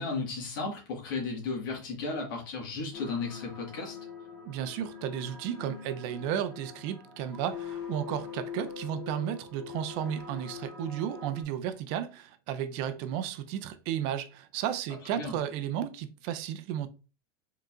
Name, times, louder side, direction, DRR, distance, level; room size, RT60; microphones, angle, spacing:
voice 1, 0.0-4.0 15.1-15.3, left 4 dB, 60° left, 1.6 m, -34 dB
sound 1, 2.9-11.4, left 6 dB, 25° left, 1.2 m, -43 dB
voice 2, 4.4-16.9, right 10 dB, 35° right, 0.4 m, -33 dB
4.5 x 3.8 x 2.4 m
supercardioid pair, 180°, 12 cm